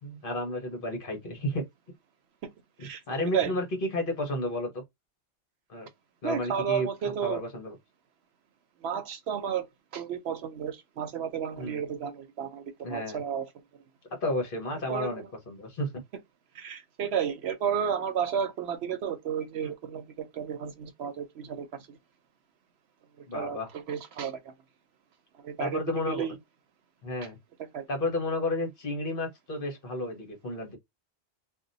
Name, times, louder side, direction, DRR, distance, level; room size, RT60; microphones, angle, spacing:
voice 1, 0.0-1.6 2.8-3.6 3.9-4.7 5.7-5.9 6.2-6.9 7.2-7.8 11.6-11.8 12.8-13.2 14.2-15.9 19.6-19.7 23.3-23.7 25.6-26.2 27.0-27.4 27.9-30.8, left 1 dB, 55° left, 1.2 m, -32 dB
voice 2, 6.2-7.4 8.8-9.7 9.9-13.4 14.9-15.2 16.5-22.0 23.3-24.5 25.4-25.8 26.1-26.4 27.7-27.9, right 8 dB, 70° right, 0.9 m, -32 dB
2.8 x 2.2 x 3.9 m
omnidirectional pair, 1.1 m